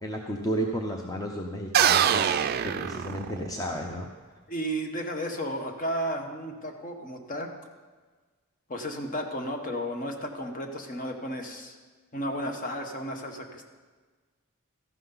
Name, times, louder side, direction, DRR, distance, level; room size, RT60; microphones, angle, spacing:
voice 1, 0.0-4.1, equal, 15° left, 2 dB, 0.7 m, -33 dB
sound 1, 1.7-3.7, right 9 dB, 45° right, 0.4 m, -24 dB
voice 2, 4.5-7.5 8.7-11.8 12.1-13.7, equal, 40° left, 4 dB, 1.2 m, -33 dB
14.0 x 11.0 x 4.0 m, 1.4 s
head